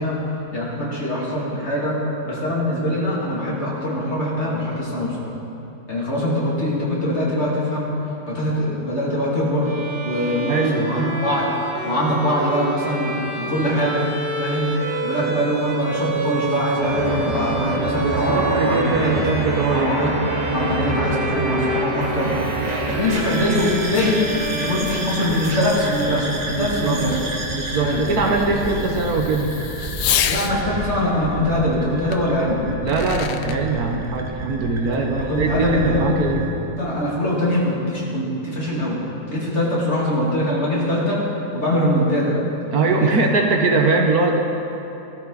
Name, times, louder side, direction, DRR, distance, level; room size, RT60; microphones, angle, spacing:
voice 1, 0.0-2.0 2.2-5.3 5.9-7.9 8.3-9.7 10.0-11.5 11.8-14.0 14.4-14.7 15.0-19.1 19.7-20.1 20.4-22.3 22.7-24.2 24.5-27.2 27.8-28.0 28.4-28.7 30.3-32.6 34.9-36.2 36.8-39.0 39.3-41.3 41.5-42.4 42.9-43.3 44.1-44.2, left 1 dB, 40° left, -6 dB, 3.0 m, -23 dB
Bowed string instrument, 9.6-25.6, right 2 dB, 85° right, 2.1 m, -29 dB
voice 2, 10.5-11.1 18.0-20.0 26.5-27.0 27.5-29.5 32.8-36.5 42.7-44.4, right 4 dB, 65° right, 3 dB, 1.5 m, -21 dB
sound 1, 16.8-36.5, right 2 dB, 30° right, 1.0 m, -28 dB
Fireworks, 21.7-30.6 32.1-32.2 32.7-33.6, left 9 dB, 75° left, 1.2 m, -32 dB
16.0 x 13.5 x 4.1 m, 2.9 s
omnidirectional pair, 1.8 m